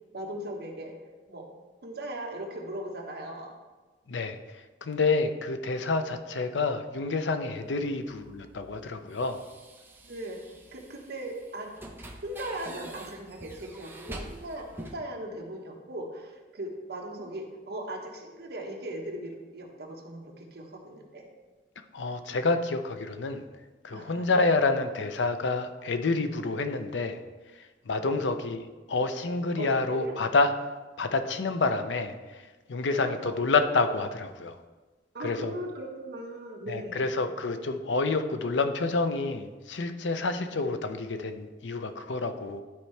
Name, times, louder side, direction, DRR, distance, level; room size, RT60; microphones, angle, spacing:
voice 1, 0.1-0.9 1.3-1.4 1.8-3.5 6.3-6.4 7.8-7.9 10.0-10.4 10.7-11.7 12.2-21.2 23.9-24.3 28.0-28.3 29.6-29.7 30.0-30.2 32.9-33.4 35.1-37.0, right 1 dB, 60° right, 0 dB, 1.3 m, -38 dB
voice 2, 4.1-9.5 21.9-23.4 23.8-27.2 27.6-28.6 28.9-30.5 31.0-34.6 35.2-35.6 36.7-42.6, left 3 dB, 85° left, 8 dB, 0.6 m, -28 dB
sound 1, 7.5-15.0, right 1 dB, 10° right, 0.7 m, -46 dB
11.5 x 4.5 x 3.3 m, 1.2 s
head